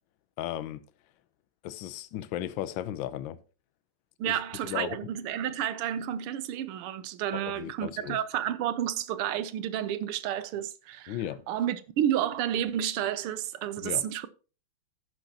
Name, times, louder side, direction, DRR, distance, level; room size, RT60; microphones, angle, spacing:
voice 1, 0.4-0.8 1.6-3.4 4.3-5.1 7.3-8.2 11.1-11.4 13.8-14.0, left 12 dB, 70° left, 1.4 m, -35 dB
voice 2, 4.2-11.2 11.5-14.3, right 10 dB, 85° right, 1.7 m, -31 dB
16.5 x 6.4 x 2.9 m
omnidirectional pair, 2.4 m